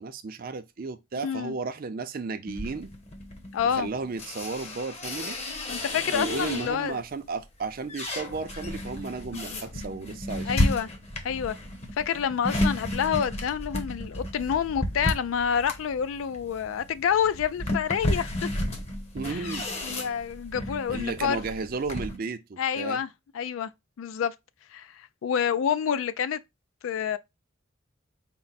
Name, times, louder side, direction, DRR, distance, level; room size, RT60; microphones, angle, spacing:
voice 1, 0.0-2.9 3.6-5.4 6.1-10.7 19.1-19.7 20.9-23.0, right 4 dB, 45° right, 0.4 m, -34 dB
voice 2, 1.2-1.6 3.5-3.9 5.7-7.0 9.5-10.1 10.5-10.9 11.2-11.6 12.0-18.5 19.3-19.5 19.8-21.4 22.6-23.1 23.3-23.7 24.0-24.3 24.7-26.4 26.8-27.2, left 8 dB, 80° left, 0.3 m, -28 dB
sound 1, 2.5-7.0 7.4-22.2, left 1 dB, 35° left, 0.8 m, -33 dB
4.4 x 2.1 x 3.9 m
head